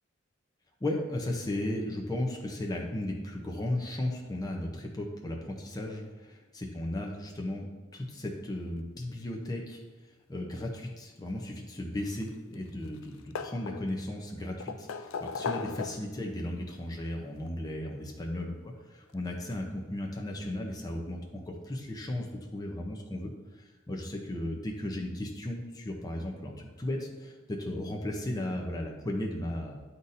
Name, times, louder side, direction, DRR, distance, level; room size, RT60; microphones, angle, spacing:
voice 1, 0.8-6.3 6.5-7.7 7.9-9.8 10.3-18.5 18.9-22.3 22.5-29.8, left 1 dB, 20° left, 0 dB, 0.6 m, -35 dB
sound 1, 12.0-12.7 13.0-14.1 14.6-16.3 17.5-17.6 19.1-19.2 19.5-19.6, left 5 dB, 75° left, 0.3 m, -37 dB
9.7 x 4.0 x 2.6 m, 1.2 s
head